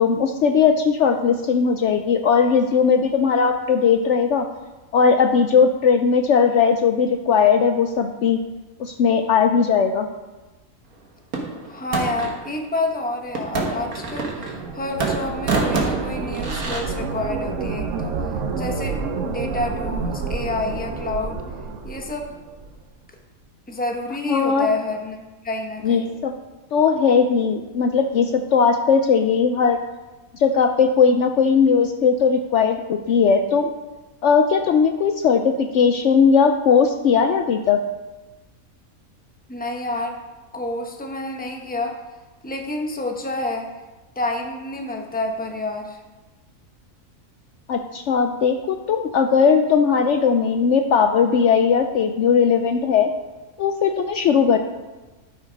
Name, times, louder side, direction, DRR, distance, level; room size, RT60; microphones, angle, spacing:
voice 1, 0.0-4.5 4.9-8.4 8.8-10.1 24.3-24.7 25.8-26.3 26.7-29.8 30.3-33.7 34.2-37.8 47.7-53.1 53.6-54.6, left 6 dB, 65° left, 6 dB, 0.8 m, -18 dB
sound 1, 11.3-12.4 13.4-14.7 15.0-16.8, right 3 dB, 85° right, 1.8 m, -26 dB
voice 2, 11.6-18.1 18.5-19.0 19.3-21.4 21.8-22.3 23.7-25.2 25.4-26.2 39.5-40.1 40.5-41.9 42.4-43.7 44.2-46.0, left 2 dB, 5° left, 2 dB, 0.9 m, -28 dB
sound 2, 13.8-22.8, right 4 dB, 65° right, 1.1 m, -29 dB
12.0 x 5.5 x 5.1 m, 1.2 s
omnidirectional pair, 1.5 m